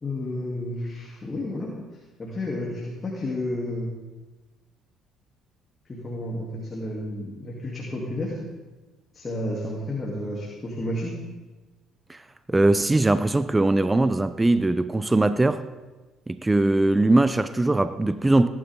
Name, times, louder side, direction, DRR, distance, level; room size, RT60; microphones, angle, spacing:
voice 1, 0.0-1.7 2.2-3.9 5.9-8.3 9.1-11.1, left 1 dB, 30° left, 3.2 m, -31 dB
voice 2, 12.5-15.6 16.3-18.5, right 2 dB, 15° right, 0.6 m, -21 dB
17.5 x 11.5 x 3.8 m
supercardioid pair, 65°, 0 cm